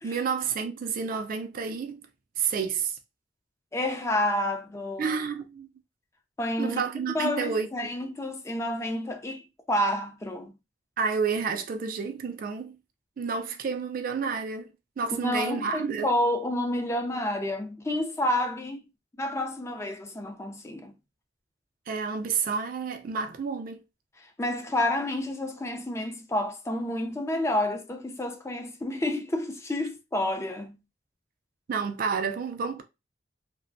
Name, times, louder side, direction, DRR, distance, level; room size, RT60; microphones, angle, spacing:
voice 1, 0.0-2.0 2.4-3.0 5.0-5.7 6.6-7.9 11.0-12.8 13.2-16.1 21.9-23.8 31.7-32.8, right 5 dB, 50° right, 0.4 m, -30 dB
voice 2, 3.7-5.2 6.4-6.8 7.1-10.5 15.1-18.8 19.2-20.9 24.2-30.8, left 1 dB, 15° left, 0.4 m, -29 dB
2.5 x 2.1 x 2.5 m
head